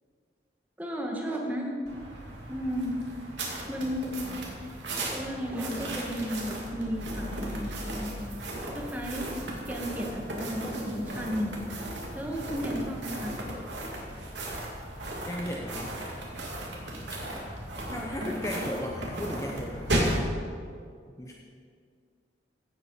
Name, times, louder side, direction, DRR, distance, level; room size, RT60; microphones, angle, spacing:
voice 1, 0.8-1.7 2.5-2.9 3.7-4.2 5.1-8.3 8.7-9.3 9.7-11.6 12.1-13.3, equal, 10° right, -1 dB, 1.7 m, -33 dB
sound 1, 1.8-20.3, right 1 dB, 75° right, 2.5 m, -35 dB
voice 2, 15.3-16.0 17.9-20.4 21.2-21.3, left 1 dB, 15° left, -1 dB, 0.8 m, -36 dB
16.0 x 8.4 x 4.9 m, 2.1 s
head